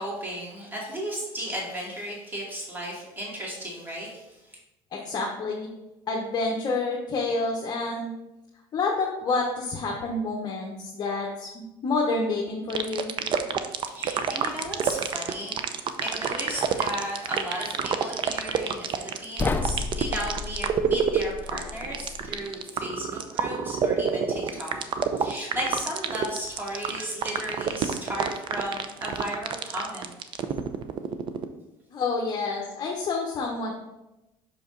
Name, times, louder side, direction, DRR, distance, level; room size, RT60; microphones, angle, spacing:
voice 1, 0.0-4.6 13.9-30.1 32.4-32.6, equal, 15° right, -3 dB, 2.4 m, -35 dB
voice 2, 4.9-5.7 6.1-8.1 8.7-13.1 31.9-33.7, left 3 dB, 40° left, -1 dB, 1.0 m, -28 dB
sound 1, 12.7-31.4, right 7 dB, 45° right, 0.6 m, -27 dB
sound 2, 19.4-22.5, left 4 dB, 15° left, 0.5 m, -32 dB
5.9 x 5.2 x 3.9 m, 0.96 s
supercardioid pair, 105°, 11 cm